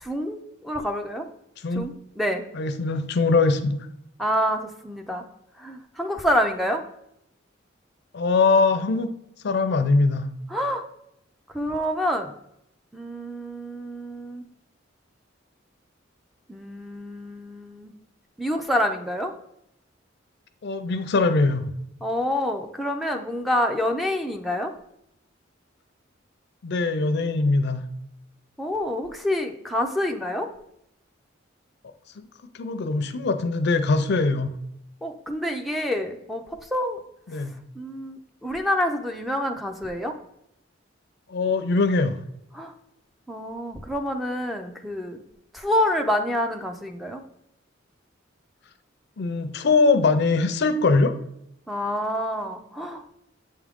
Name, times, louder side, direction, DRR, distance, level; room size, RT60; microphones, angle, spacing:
voice 1, 0.0-1.3 1.7-2.4 4.2-5.2 5.6-6.8 10.5-10.8 11.5-12.3 12.9-14.4 16.5-17.9 18.4-19.3 22.0-24.7 28.6-30.5 35.0-37.0 37.8-40.2 42.5-42.7 43.3-45.2 45.5-47.2 51.7-53.0, left 1 dB, ahead, 4 dB, 0.4 m, -27 dB
voice 2, 2.5-3.8 8.1-9.1 9.4-10.3 20.6-21.7 26.6-27.8 32.6-34.5 37.3-37.5 41.3-42.2 49.2-51.1, left 3 dB, 60° left, 9 dB, 0.5 m, -22 dB
8.1 x 3.6 x 3.5 m, 0.78 s
head